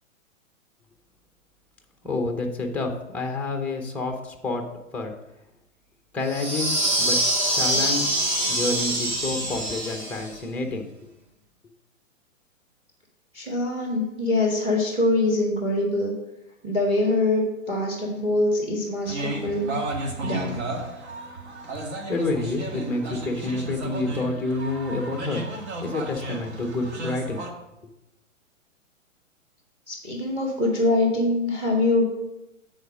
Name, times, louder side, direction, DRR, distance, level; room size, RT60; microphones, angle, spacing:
voice 1, 2.0-4.6 4.9-5.2 6.1-10.9 21.7-21.8 22.1-25.4 25.8-27.5, left 2 dB, 5° left, 3 dB, 0.5 m, -29 dB
sound 1, 6.3-10.3, right 1 dB, 35° right, 2.8 m, -24 dB
voice 2, 13.3-16.1 16.6-19.8 20.2-20.6 29.9-32.0, left 2 dB, 15° right, -1 dB, 1.5 m, -24 dB
sound 2, 19.1-27.5, right 2 dB, 55° right, 1.8 m, -34 dB
8.0 x 4.2 x 6.1 m, 0.90 s
hypercardioid pair, 130°, 40 cm